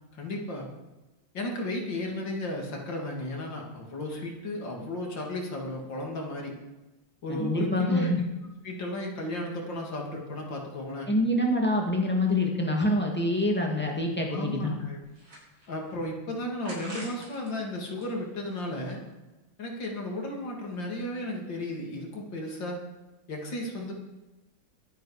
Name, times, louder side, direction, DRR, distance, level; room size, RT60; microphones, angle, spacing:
voice 1, 0.1-0.7 1.3-6.6 7.2-8.2 8.6-11.1 14.3-15.0 15.7-19.0 19.6-22.8 23.3-23.9, left 1 dB, 70° left, 0 dB, 3.3 m, -34 dB
voice 2, 7.3-8.2 11.1-14.7, left 1 dB, 5° left, 0 dB, 2.2 m, -26 dB
sound 1, 15.1-15.9 16.6-17.5 17.9-19.1, right 1 dB, 80° right, 5.8 m, -45 dB
23.0 x 8.3 x 5.1 m, 1.1 s
omnidirectional pair, 2.1 m